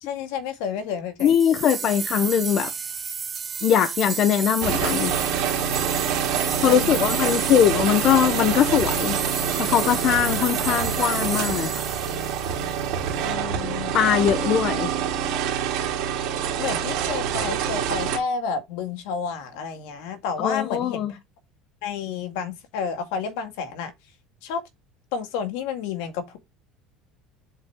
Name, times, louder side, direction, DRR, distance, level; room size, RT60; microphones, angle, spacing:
voice 1, 0.0-1.3 6.6-7.2 13.2-13.9 16.6-21.2 21.8-23.9 24.4-24.6 25.1-26.4, left 6 dB, 75° left, 2.0 m, -30 dB
voice 2, 1.2-2.7 3.6-5.2 6.6-9.2 9.6-11.7 13.9-14.9 20.4-21.1, left 9 dB, 40° left, 0.7 m, -21 dB
sound 1, 1.2-13.2, right 6 dB, 20° right, 0.5 m, -32 dB
sound 2, 4.6-18.2, right 8 dB, 55° right, 2.7 m, -26 dB
7.7 x 4.7 x 3.6 m
cardioid pair, 160°, 0 cm